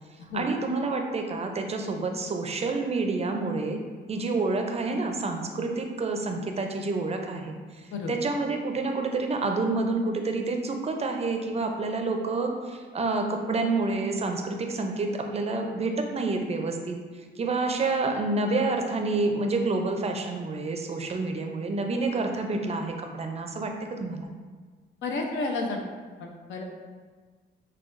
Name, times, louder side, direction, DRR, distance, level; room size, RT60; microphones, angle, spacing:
voice 1, 0.3-3.8 4.1-7.5 8.1-17.0 17.4-24.3, right 3 dB, 30° right, 3 dB, 0.5 m, -28 dB
voice 2, 25.0-25.8 26.2-26.6, left 3 dB, 70° left, 2 dB, 0.6 m, -31 dB
5.7 x 2.3 x 2.5 m, 1.5 s
cardioid pair, 90°, 20 cm